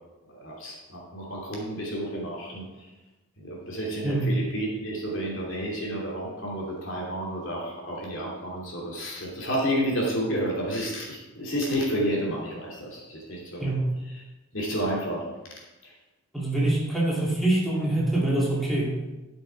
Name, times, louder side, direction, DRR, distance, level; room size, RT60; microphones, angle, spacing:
voice 1, 0.3-2.7 3.4-13.6 14.5-15.2 15.8-15.9, equal, 65° left, -3 dB, 2.8 m, -30 dB
voice 2, 16.3-18.9, right 1 dB, ahead, -7 dB, 2.6 m, -24 dB
12.5 x 6.3 x 4.6 m, 1.1 s
head